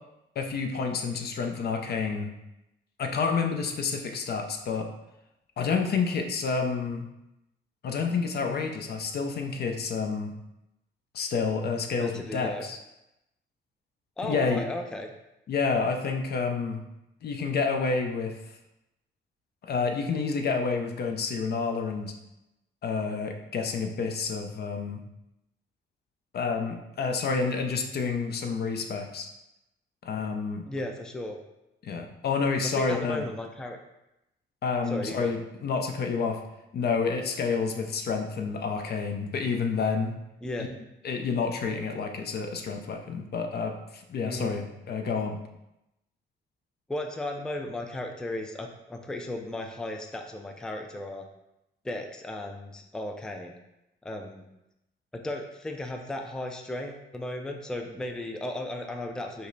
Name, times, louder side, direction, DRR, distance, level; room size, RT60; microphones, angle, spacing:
voice 1, 0.4-2.3 3.0-4.9 5.6-7.0 7.8-10.3 11.1-12.8 14.2-14.6 15.5-16.8 17.2-18.4 19.6-22.1 22.8-25.0 26.3-29.3 30.0-30.7 31.8-33.2 34.6-36.4 36.7-40.1 41.0-45.4, left 5 dB, 55° left, 4 dB, 0.6 m, -29 dB
voice 2, 12.0-12.7 14.2-15.1 30.7-31.4 32.6-33.8 34.9-35.3 40.4-40.7 44.2-44.6 46.9-51.3 51.8-53.6 54.0-54.5 55.1-59.5, left 1 dB, 5° left, 4 dB, 0.4 m, -35 dB
5.3 x 2.0 x 3.9 m, 0.89 s
cardioid pair, 90°, 20 cm